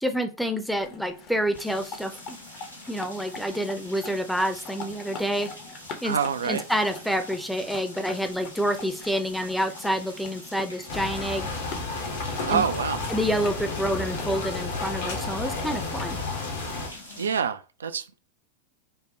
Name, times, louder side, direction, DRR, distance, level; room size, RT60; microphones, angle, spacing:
voice 1, 0.0-2.4 2.9-5.5 6.0-6.2 6.4-11.5 12.5-12.7 13.1-16.2, equal, ahead, 0.6 m, -28 dB
sound 1, 0.7-17.4, left 4 dB, 40° left, 0.8 m, -44 dB
sound 2, 1.5-17.3, equal, 85° left, 1.1 m, -46 dB
voice 2, 6.0-6.6 12.5-13.0 17.2-18.2, right 7 dB, 70° right, 0.3 m, -26 dB
sound 3, 10.9-16.9, left 3 dB, 60° left, 1.1 m, -32 dB
5.3 x 2.1 x 2.9 m
figure-of-eight pair, 90°, 0 cm